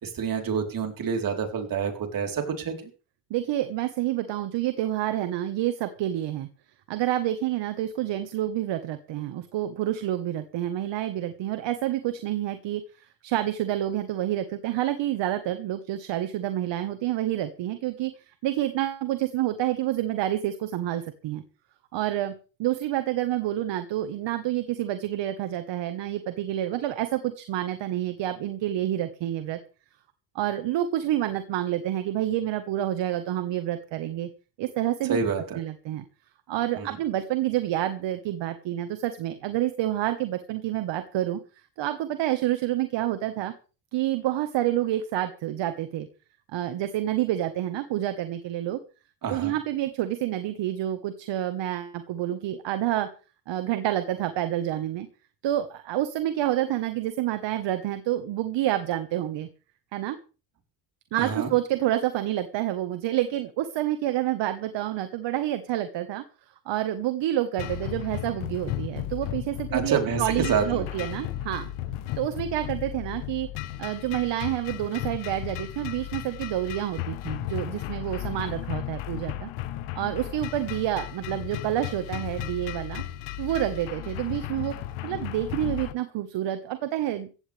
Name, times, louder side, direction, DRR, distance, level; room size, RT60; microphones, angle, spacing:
voice 1, 0.0-2.9 35.1-35.6 36.7-36.9 49.2-49.5 61.2-61.5 69.7-70.9, right 6 dB, 40° right, 3 dB, 4.2 m, -28 dB
voice 2, 3.3-6.5 6.9-18.1 18.4-21.4 21.9-22.3 22.6-29.6 30.3-34.3 34.6-35.2 35.5-36.0 36.5-41.4 41.8-43.5 43.9-46.1 46.5-48.8 49.3-53.1 53.5-55.1 55.4-59.5 59.9-60.2 61.1-66.2 66.6-71.7 72.2-73.5 73.8-79.5 79.9-83.0 83.4-84.7 85.0-87.3, right 13 dB, 60° right, 9 dB, 1.6 m, -28 dB
sound 1, 67.6-85.9, left 13 dB, 75° left, 1.2 m, -35 dB
16.0 x 15.5 x 3.5 m, 0.36 s
cardioid pair, 105°, 49 cm